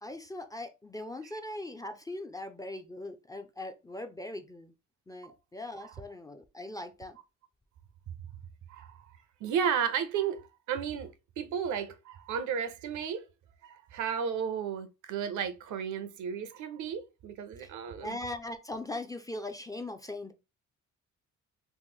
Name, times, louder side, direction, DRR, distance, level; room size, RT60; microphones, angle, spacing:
voice 1, 0.0-4.7 5.1-7.2 17.6-17.7 18.0-20.3, left 2 dB, 10° left, 0.4 m, -40 dB
voice 2, 8.7-9.1 9.4-10.4 10.7-13.2 13.6-18.2, right 7 dB, 75° right, 0.6 m, -33 dB
3.0 x 2.0 x 3.5 m
cardioid pair, 90°, 30 cm